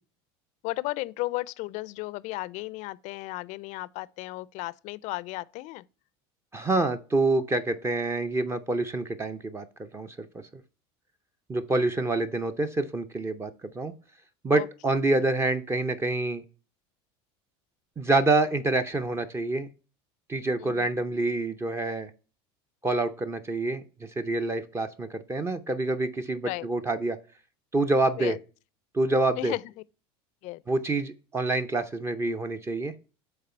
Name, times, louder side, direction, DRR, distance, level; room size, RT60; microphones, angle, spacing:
voice 1, 0.6-5.8 14.5-14.7 20.6-21.0 26.4-26.7 28.2-28.4 29.4-29.6 30.4-30.6, left 20 dB, 60° left, 0.4 m, -34 dB
voice 2, 6.5-10.4 11.5-13.9 14.4-16.4 18.0-19.7 20.3-22.1 22.8-23.8 24.2-27.2 27.7-28.4 28.9-29.5 30.7-32.9, right 2 dB, 20° right, 0.6 m, -27 dB
6.6 x 4.0 x 4.3 m
supercardioid pair, 105°, 14 cm